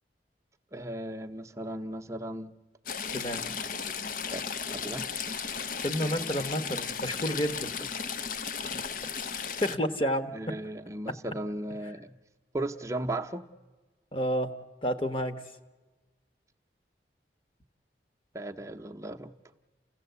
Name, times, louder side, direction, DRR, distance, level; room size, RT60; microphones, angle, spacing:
voice 1, 0.7-2.5 3.5-3.6 4.3-4.4 4.7-5.0 10.3-12.1 12.5-13.5 18.3-19.3, right 1 dB, 15° right, 6 dB, 0.8 m, -36 dB
Stream / Trickle dribble, 2.9-9.8, left 6 dB, 50° left, 0.6 m, -35 dB
voice 2, 3.1-3.4 5.8-7.7 8.6-8.8 9.6-10.3 11.1-11.2 14.1-14.5 14.8-15.4, equal, 30° left, 8 dB, 1.1 m, -30 dB
29.0 x 16.0 x 8.1 m, 1.3 s
head